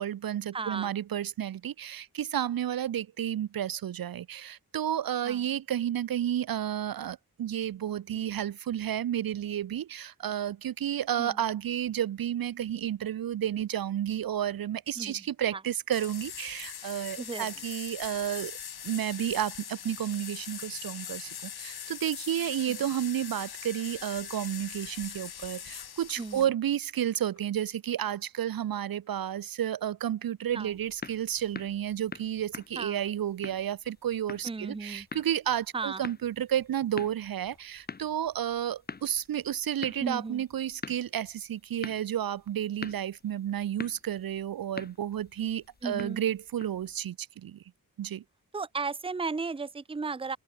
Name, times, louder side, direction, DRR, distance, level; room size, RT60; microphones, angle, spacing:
voice 1, 0.0-18.6 18.8-47.6 48.0-48.2, right 10 dB, 70° right, 0.5 m, -31 dB
voice 2, 0.5-0.9 5.2-5.4 11.2-11.4 15.0-15.2 15.5-15.6 17.2-17.5 22.7-22.8 26.2-26.4 30.5-30.7 32.8-33.0 34.4-35.1 35.7-36.0 40.0-40.4 45.8-46.2 48.5-50.4, right 4 dB, 15° right, 0.6 m, -35 dB
sound 1, 15.9-26.5, left 8 dB, 85° left, 1.3 m, -42 dB
sound 2, 27.3-27.5 27.9-28.2 28.6-28.8 29.2-30.4 30.6-31.1 31.5-31.6 32.5-32.9 33.8-34.0 35.2-35.4 37.1-37.2 37.5-37.8, left 4 dB, 45° left, 7.1 m, -66 dB
sound 3, 30.5-47.0, left 4 dB, 25° left, 0.7 m, -46 dB
wide cardioid pair, 150°, 37 cm